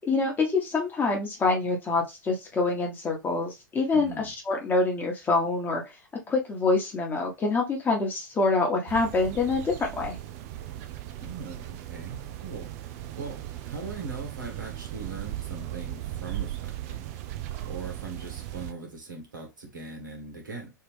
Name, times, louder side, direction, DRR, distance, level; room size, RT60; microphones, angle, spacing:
voice 1, 0.0-5.9 6.3-10.2, left 3 dB, 20° left, 1 dB, 1.2 m, -26 dB
voice 2, 3.9-4.3 11.2-12.7 13.2-17.0 17.6-20.7, right 4 dB, 80° right, 1 dB, 1.5 m, -40 dB
sound 1, 8.9-18.7, right 13 dB, 50° right, 0.5 m, -37 dB
3.3 x 2.9 x 3.3 m, 0.22 s
figure-of-eight pair, 95°, 11 cm